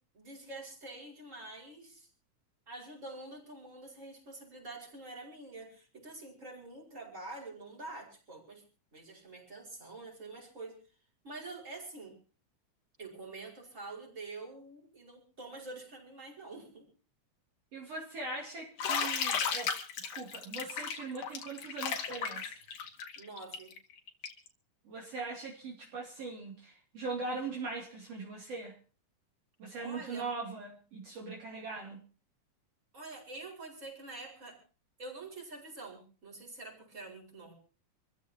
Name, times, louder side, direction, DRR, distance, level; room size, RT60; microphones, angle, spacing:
voice 1, 0.1-2.1 2.7-8.6 8.9-10.8 11.2-12.2 13.0-16.9 23.2-23.8 29.8-30.3 32.9-34.6 35.0-37.5, right 2 dB, 25° right, 0 dB, 5.5 m, -46 dB
voice 2, 17.7-22.6 24.9-28.7 29.6-32.0, right 3 dB, 55° right, -2 dB, 3.7 m, -41 dB
Bathtub (filling or washing), 18.8-24.5, left 7 dB, 85° left, 3.4 m, -34 dB
26.5 x 14.5 x 2.9 m, 0.39 s
omnidirectional pair, 3.5 m